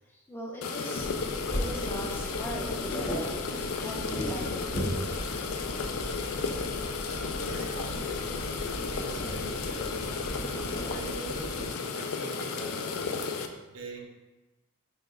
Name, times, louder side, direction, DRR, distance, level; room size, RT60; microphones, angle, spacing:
voice 1, 0.3-1.3 1.6-5.0 5.4-5.5, equal, 10° left, -3 dB, 0.6 m, -40 dB
sound 1, 0.6-13.5, left 5 dB, 80° left, 0.3 m, -34 dB
sound 2, 1.0-11.7, equal, 45° left, 0.9 m, -37 dB
voice 2, 7.4-13.1 13.6-14.1, right 2 dB, 70° right, 1 dB, 0.6 m, -44 dB
5.3 x 2.9 x 2.3 m, 1.1 s
head